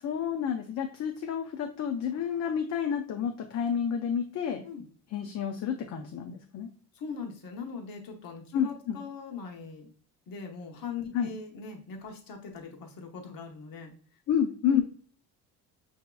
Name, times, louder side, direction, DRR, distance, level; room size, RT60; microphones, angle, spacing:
voice 1, 0.0-4.6 5.1-6.7 8.5-9.0 11.1-11.3 14.3-14.8, left 8 dB, 45° left, 4 dB, 0.5 m, -30 dB
voice 2, 6.9-9.9 10.3-13.9 14.7-14.8, left 6 dB, 60° left, 2 dB, 1.0 m, -40 dB
6.7 x 2.8 x 2.2 m, 0.44 s
cardioid pair, 130°, 39 cm